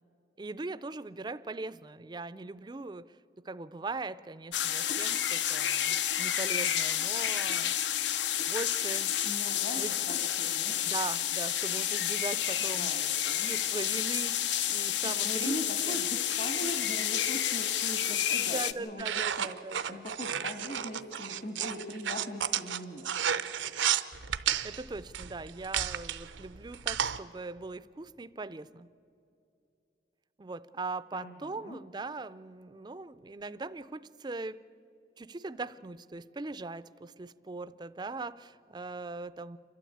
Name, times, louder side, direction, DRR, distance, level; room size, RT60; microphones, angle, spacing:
voice 1, 0.4-7.7 8.5-9.2 9.7-9.9 10.8-12.9 13.4-14.4 14.7-15.6 15.9-16.0 16.6-16.7 17.9-20.0 24.6-28.9 30.4-34.6 35.2-39.6, right 3 dB, 25° right, 16 dB, 0.4 m, -40 dB
sound 1, 4.5-18.7, left 10 dB, 75° left, 0.7 m, -30 dB
voice 2, 9.2-10.7 12.8-13.5 15.0-19.5 19.9-23.1 31.1-31.8, equal, 50° left, 4 dB, 1.5 m, -40 dB
sound 2, 19.0-27.2, right 9 dB, 85° right, 0.7 m, -32 dB
29.0 x 12.5 x 8.6 m, 2.7 s
head